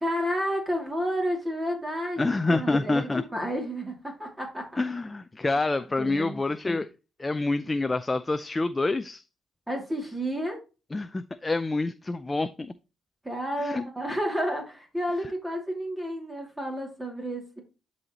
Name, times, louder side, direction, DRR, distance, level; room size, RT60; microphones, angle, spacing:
voice 1, 0.0-4.8 6.0-6.4 9.7-10.6 13.2-17.6, equal, 10° right, 2.4 m, -31 dB
voice 2, 2.2-3.2 4.8-6.9 7.2-9.2 10.9-12.7 13.6-13.9, left 2 dB, 20° left, 0.4 m, -27 dB
11.0 x 4.2 x 3.0 m
cardioid pair, 90°, 0 cm